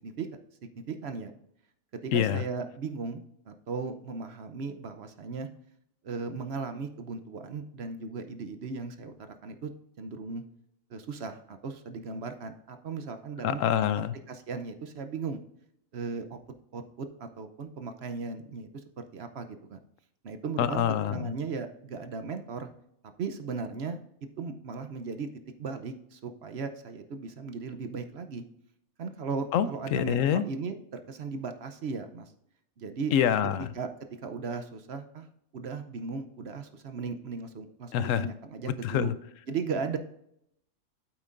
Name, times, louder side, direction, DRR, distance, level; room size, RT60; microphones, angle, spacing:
voice 1, 0.9-1.3 2.0-5.5 6.0-9.1 9.4-9.7 10.0-10.4 10.9-13.9 14.3-15.4 15.9-16.4 16.7-18.7 19.0-19.8 20.2-20.8 21.1-22.7 23.2-24.0 24.4-25.3 25.6-28.4 29.0-32.3 32.8-33.1 33.7-33.9 34.2-35.3 35.5-39.1 39.5-40.0, right 4 dB, 60° right, 8 dB, 0.9 m, -36 dB
voice 2, 2.1-2.4 13.4-14.1 20.6-21.2 29.5-30.4 33.1-33.7 37.9-38.3 38.8-39.1, left 9 dB, 75° left, 14 dB, 0.9 m, -26 dB
8.8 x 8.2 x 2.5 m, 0.75 s
omnidirectional pair, 1.4 m